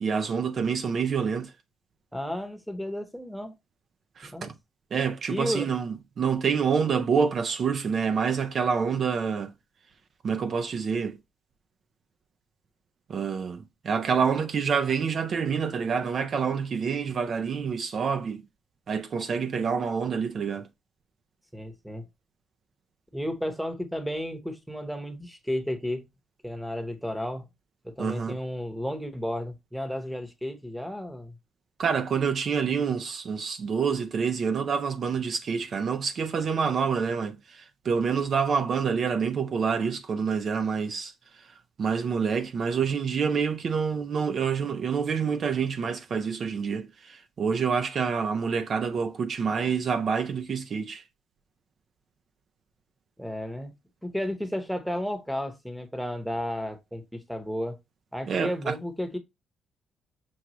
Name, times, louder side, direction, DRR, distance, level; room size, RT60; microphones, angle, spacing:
voice 1, 0.0-1.5 4.2-4.5 4.9-9.5 10.2-11.2 13.1-18.4 18.9-20.7 28.0-28.4 31.8-51.0 58.3-58.8, right 6 dB, 55° right, 0.4 m, -27 dB
voice 2, 2.1-3.5 4.3-4.5 5.3-5.7 21.5-22.0 23.1-26.1 26.4-27.5 27.8-31.4 53.2-53.7 54.0-57.8 58.1-59.2, equal, ahead, 0.9 m, -33 dB
6.1 x 2.3 x 2.9 m
cardioid pair, 90°, 0 cm